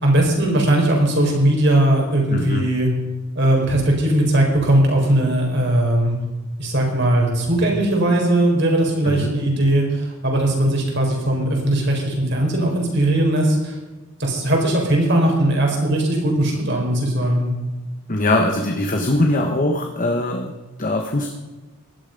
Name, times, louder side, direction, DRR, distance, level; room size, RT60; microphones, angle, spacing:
voice 1, 0.0-2.9 3.4-6.2 6.6-13.8 14.2-17.5, right 1 dB, 55° right, 0 dB, 4.4 m, -19 dB
voice 2, 2.3-2.7 9.0-9.3 18.1-21.3, left 1 dB, 40° left, 3 dB, 1.2 m, -21 dB
17.0 x 12.0 x 5.3 m, 1.2 s
head